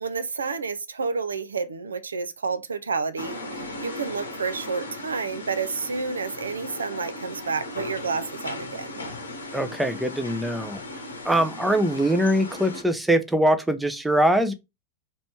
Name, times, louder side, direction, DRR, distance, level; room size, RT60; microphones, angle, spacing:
voice 1, 0.0-9.0, right 5 dB, 75° right, 0.4 m, -30 dB
sound 1, 3.2-12.8, left 1 dB, 75° left, 0.9 m, -37 dB
voice 2, 9.5-10.8 11.2-14.5, right 1 dB, 5° right, 0.6 m, -22 dB
3.1 x 3.0 x 4.4 m
figure-of-eight pair, 90°, 0 cm